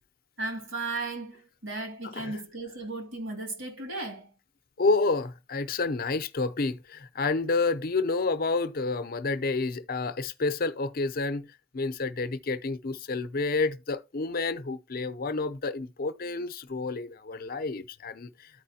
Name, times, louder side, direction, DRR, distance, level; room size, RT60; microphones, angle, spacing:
voice 1, 0.4-4.3, right 2 dB, 75° right, 2.4 m, -35 dB
voice 2, 4.8-11.5 11.7-18.3, left 3 dB, 50° left, 0.6 m, -29 dB
13.5 x 4.8 x 2.8 m
head